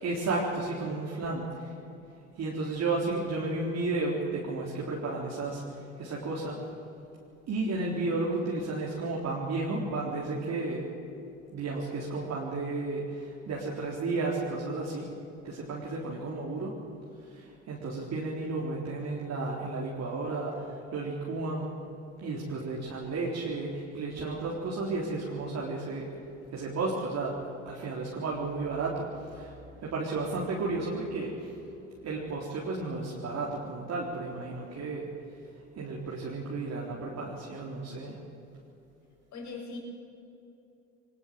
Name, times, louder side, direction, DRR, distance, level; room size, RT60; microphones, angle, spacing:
voice 1, 0.0-1.7 2.4-6.6 7.5-10.8 11.5-15.1 15.4-16.7 17.3-21.7 22.2-26.1 26.5-27.4 27.7-29.5 29.8-31.8 32.0-35.1 35.8-38.2, right 3 dB, 45° right, -4 dB, 4.1 m, -33 dB
voice 2, 39.3-39.8, left 4 dB, 50° left, 1 dB, 7.4 m, -40 dB
22.0 x 20.0 x 7.8 m, 2.7 s
hypercardioid pair, 75°, 38 cm